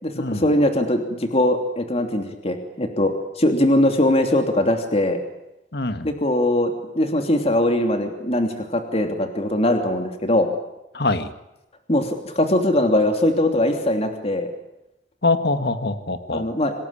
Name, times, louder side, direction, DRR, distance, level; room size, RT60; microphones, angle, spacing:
voice 1, 0.0-5.2 6.0-10.5 11.9-14.5 16.3-16.7, left 1 dB, 35° left, 5 dB, 3.0 m, -21 dB
voice 2, 5.7-6.1 10.9-11.3 15.2-16.4, left 3 dB, 65° left, 10 dB, 2.0 m, -23 dB
27.5 x 19.5 x 8.8 m, 0.91 s
head